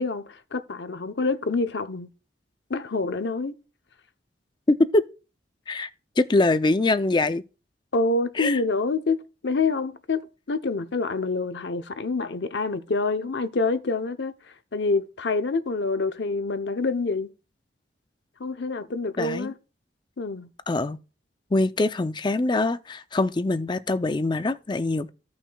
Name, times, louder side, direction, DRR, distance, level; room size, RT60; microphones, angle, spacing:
voice 1, 0.0-2.1 2.7-3.5 7.9-14.3 14.7-17.3 18.4-19.5 20.2-20.5, left 3 dB, 75° left, 0.7 m, -27 dB
voice 2, 4.7-5.1 5.7-5.9 6.2-7.4 8.4-8.6 19.2-19.5 20.7-21.0 21.5-25.1, left 2 dB, 25° left, 0.4 m, -23 dB
15.0 x 5.9 x 2.3 m
head